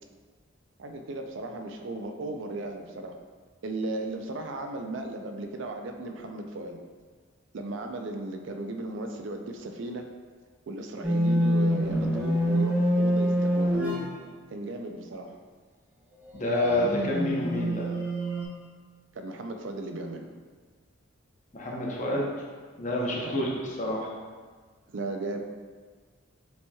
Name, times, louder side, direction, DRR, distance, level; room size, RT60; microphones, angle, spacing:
voice 1, 0.8-3.2 3.6-6.8 7.5-10.1 10.7-14.0 14.5-15.3 19.1-20.3 23.2-23.5 24.9-25.4, right 2 dB, 65° right, 4 dB, 0.4 m, -36 dB
sound 1, 11.0-14.1 16.4-18.4, equal, 10° right, 0.7 m, -26 dB
voice 2, 16.3-17.9 21.5-22.3 22.8-24.1, left 1 dB, 35° left, -2 dB, 0.7 m, -28 dB
6.9 x 3.0 x 2.3 m, 1.5 s
head